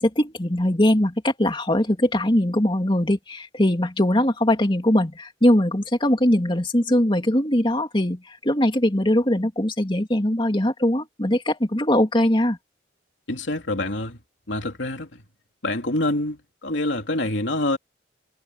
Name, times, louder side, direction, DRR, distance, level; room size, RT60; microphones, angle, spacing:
voice 1, 0.0-12.6, left 1 dB, 25° left, 2.7 m, -21 dB
voice 2, 13.3-14.2 14.5-15.2 15.6-17.8, left 1 dB, 80° left, 2.9 m, -26 dB
head